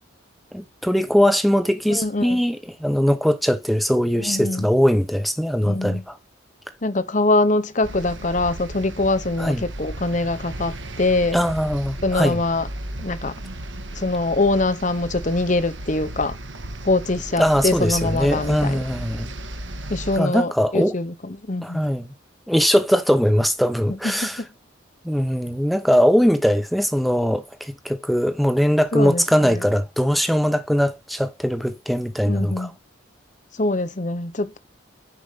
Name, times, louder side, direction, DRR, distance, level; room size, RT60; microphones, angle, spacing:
voice 1, 0.5-6.1 9.4-9.6 11.3-12.4 17.4-19.3 20.2-20.9 21.6-22.1 22.5-24.4 25.0-32.7, equal, ahead, 0.8 m, -21 dB
voice 2, 1.9-2.4 4.2-4.7 5.6-6.0 6.8-11.4 12.0-12.7 13.0-13.4 13.9-16.4 16.8-18.8 19.9-21.8 24.0-24.5 28.9-29.7 32.3-32.7 33.5-34.6, left 2 dB, 35° left, 0.9 m, -23 dB
sound 1, 7.8-20.2, right 1 dB, 65° right, 1.6 m, -35 dB
10.0 x 5.1 x 5.1 m
head